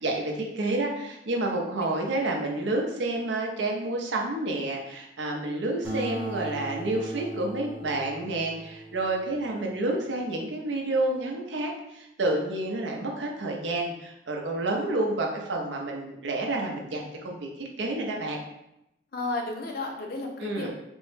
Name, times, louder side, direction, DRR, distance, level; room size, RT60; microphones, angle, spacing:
voice 1, 0.0-18.4 20.4-20.7, right 2 dB, 80° right, 0 dB, 0.6 m, -29 dB
Acoustic guitar, 5.8-10.7, right 2 dB, 10° right, 0.6 m, -40 dB
voice 2, 19.1-20.7, left 2 dB, 55° left, 1 dB, 0.5 m, -33 dB
3.4 x 2.1 x 3.1 m, 0.86 s
head